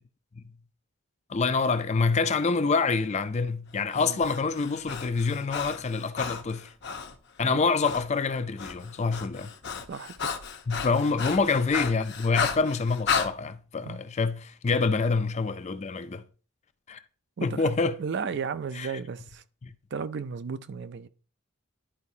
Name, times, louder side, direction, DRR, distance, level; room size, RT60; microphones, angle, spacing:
voice 1, 1.3-6.7 7.4-9.5 10.7-16.2 16.9-17.0 17.4-18.0 18.7-18.9 19.6-19.7, left 4 dB, 30° left, 0.4 m, -26 dB
Breathing, 3.9-7.2 7.8-8.1 8.3-13.3, left 6 dB, 55° left, 0.7 m, -33 dB
voice 2, 17.4-17.7 18.0-19.4 19.9-21.1, right 5 dB, 55° right, 0.4 m, -34 dB
11.5 x 4.7 x 2.7 m
head